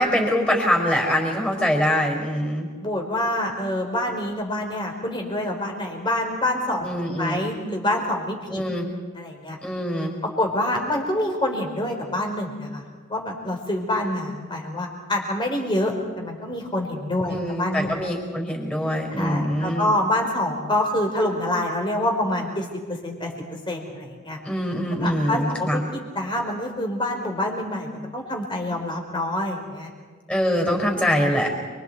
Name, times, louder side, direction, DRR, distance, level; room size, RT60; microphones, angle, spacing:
voice 1, 0.0-2.7 6.8-7.4 8.5-9.0 9.6-10.1 17.3-19.9 24.4-25.8 30.3-31.5, equal, 5° left, 0 dB, 5.2 m, -24 dB
voice 2, 2.8-6.9 7.2-8.6 9.1-9.6 10.2-12.8 13.1-17.9 19.1-23.3 23.7-24.4 24.9-29.9 30.6-30.8, left 1 dB, 25° left, 1 dB, 4.2 m, -26 dB
29.5 x 24.0 x 4.7 m, 1.5 s
head